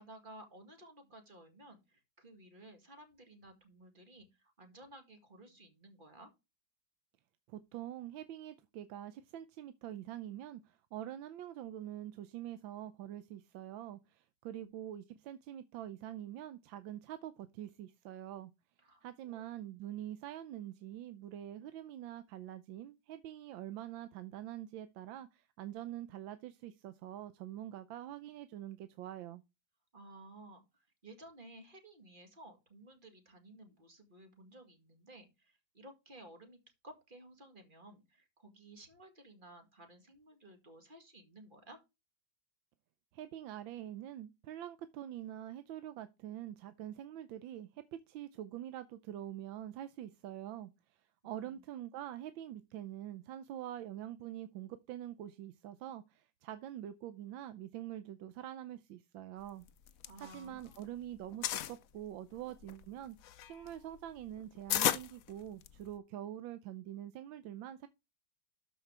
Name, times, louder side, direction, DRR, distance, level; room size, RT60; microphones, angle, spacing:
voice 1, 0.0-6.3 14.5-14.7 18.8-19.4 29.9-41.8 51.2-51.6 60.1-60.8, right 1 dB, 25° right, 2.1 m, -56 dB
voice 2, 7.5-18.5 19.0-29.4 43.1-51.0 51.2-59.6 60.2-63.2 63.4-67.9, right 12 dB, 80° right, 1.4 m, -45 dB
sound 1, 59.7-60.9 61.1-61.8 62.4-66.0, left 11 dB, 65° left, 0.8 m, -35 dB
13.0 x 5.2 x 3.3 m
omnidirectional pair, 2.1 m